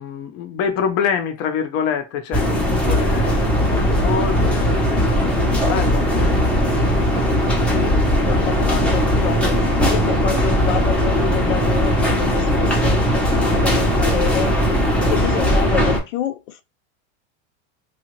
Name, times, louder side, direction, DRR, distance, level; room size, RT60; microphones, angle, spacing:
voice 1, 0.0-6.4 6.9-8.8, left 7 dB, 40° left, 0.7 m, -27 dB
sound 1, 2.3-16.0, equal, 5° left, 0.6 m, -18 dB
voice 2, 8.2-9.6 9.9-16.6, left 9 dB, 85° left, 0.6 m, -28 dB
2.8 x 2.4 x 2.9 m
supercardioid pair, 135°, 36 cm